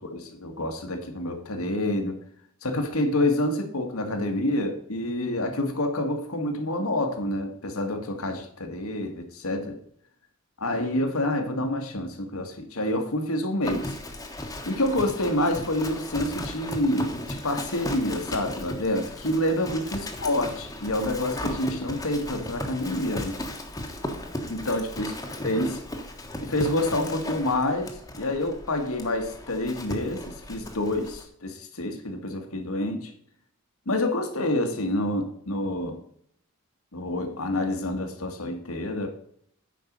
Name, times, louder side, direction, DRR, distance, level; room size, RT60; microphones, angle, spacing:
voice 1, 0.1-2.2 2.6-9.8 10.6-14.0 14.7-23.4 24.5-25.1 25.4-25.8 26.4-33.1 33.9-36.0 36.9-39.1, left 1 dB, 75° left, 5 dB, 1.8 m, -28 dB
Livestock farm animals working animals, 13.6-31.2, left 1 dB, 15° left, 1.3 m, -36 dB
9.2 x 5.5 x 5.3 m, 0.66 s
head